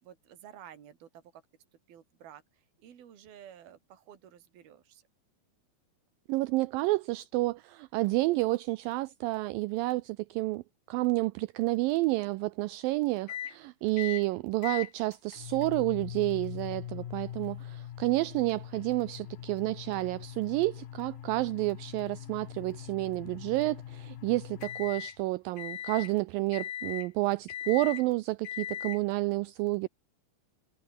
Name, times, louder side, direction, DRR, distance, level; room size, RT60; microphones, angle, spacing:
voice 1, 0.0-1.4 1.9-5.1 19.0-19.6, right 10 dB, 70° right, 4.7 m, -53 dB
voice 2, 6.3-10.6 10.9-29.9, right 20 dB, 85° right, 2.0 m, -30 dB
sound 1, 13.3-13.6 14.0-14.3 14.6-25.2 25.6-26.1 26.5-27.1 27.5-28.0 28.4-29.0, left 11 dB, 65° left, 3.3 m, -41 dB
omnidirectional pair, 4.6 m